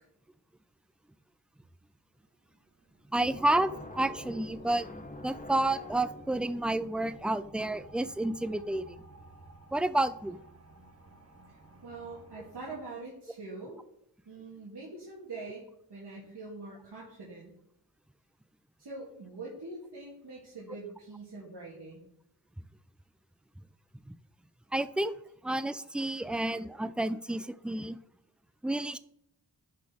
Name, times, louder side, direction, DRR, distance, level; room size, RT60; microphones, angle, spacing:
sound 1, 2.2-12.8, right 2 dB, 40° right, 1.2 m, -57 dB
voice 1, 3.1-9.0 9.7-10.4 24.1-24.2 24.7-25.1 25.4-28.0 28.6-29.0, right 1 dB, 5° right, 13 dB, 0.3 m, -30 dB
sound 2, 3.2-10.0, left 1 dB, 20° left, 0.9 m, -48 dB
voice 2, 11.5-13.8 14.2-17.5 18.8-22.1, right 3 dB, 85° right, -5 dB, 1.6 m, -44 dB
11.0 x 4.1 x 3.5 m, 0.75 s
wide cardioid pair, 55°, 40 cm